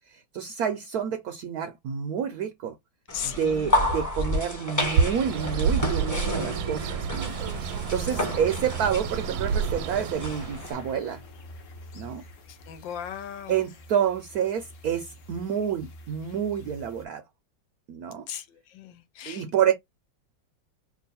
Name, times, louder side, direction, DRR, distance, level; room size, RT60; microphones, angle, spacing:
voice 1, 0.1-2.7 3.2-11.2 11.9-12.2 13.5-17.2 17.9-18.2 19.3-19.7, right 8 dB, 70° right, 0.9 m, -29 dB
voice 2, 3.1-3.8 4.2-4.4 8.0-8.4 12.5-13.6 18.3-19.4, left 9 dB, 80° left, 1.4 m, -38 dB
sound 1, 3.1-10.7, left 1 dB, 10° left, 0.9 m, -31 dB
Bird, 4.8-10.7, right 6 dB, 85° right, 1.3 m, -29 dB
sound 2, 7.2-17.1, left 1 dB, 55° left, 0.9 m, -48 dB
3.1 x 2.5 x 4.1 m
omnidirectional pair, 2.1 m